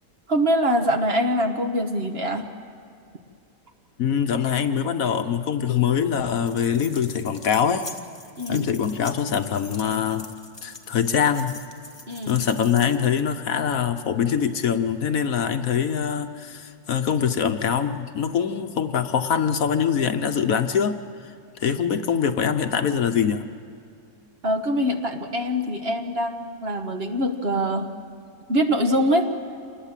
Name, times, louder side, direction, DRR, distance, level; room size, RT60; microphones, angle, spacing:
voice 1, 0.3-2.5 8.4-8.7 12.1-12.4 24.4-27.9 28.5-29.3, equal, 40° right, 5 dB, 1.5 m, -23 dB
voice 2, 4.0-7.9 8.5-10.3 10.6-11.6 12.3-21.0 21.6-23.4, left 7 dB, 65° left, 8 dB, 1.2 m, -23 dB
sound 1, 6.3-13.3, left 2 dB, 20° left, 1.1 m, -43 dB
27.5 x 20.0 x 7.4 m, 2.5 s
omnidirectional pair, 1.7 m